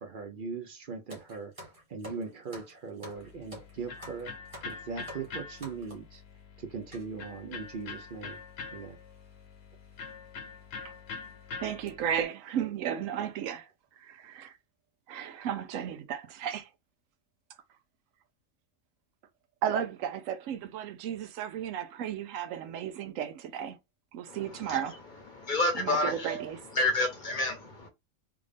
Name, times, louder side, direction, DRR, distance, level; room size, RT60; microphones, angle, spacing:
voice 1, 0.0-1.5 1.9-4.3 4.7-6.2 6.6-8.4 8.7-9.0, right 5 dB, 50° right, 0.6 m, -39 dB
sound 1, 1.1-6.2 6.9-7.1 7.8-7.9 8.1-8.3 9.2-9.4 9.9-10.0 10.5-10.6 11.1-11.3 11.7-11.9, equal, 25° right, 1.3 m, -48 dB
Electric guitar, 3.1-12.2, left 4 dB, 70° left, 1.1 m, -45 dB
voice 2, 11.6-13.7 14.0-14.6 15.1-16.7 19.6-23.8 24.1-25.0 25.8-26.6, right 9 dB, 75° right, 1.0 m, -34 dB
voice 3, 24.3-25.0 25.3-27.9, left 2 dB, 40° left, 0.8 m, -30 dB
3.5 x 2.5 x 3.3 m
omnidirectional pair, 1.4 m